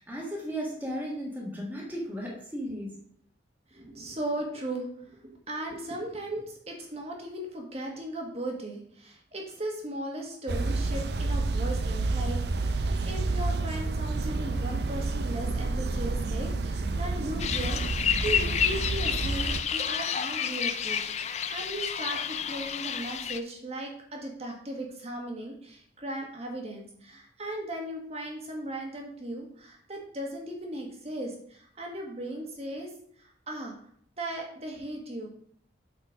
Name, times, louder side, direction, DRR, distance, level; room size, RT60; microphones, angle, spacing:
voice 1, 0.0-2.9, equal, 10° right, -3 dB, 1.5 m, -35 dB
voice 2, 3.7-5.2 5.5-32.9 33.2-33.7 34.2-35.3, right 1 dB, 35° right, 1 dB, 1.6 m, -37 dB
sound 1, 10.5-19.6, right 3 dB, 60° right, 0.5 m, -29 dB
sound 2, 17.4-23.4, left 8 dB, 35° left, 0.4 m, -30 dB
8.0 x 4.3 x 5.2 m, 0.63 s
head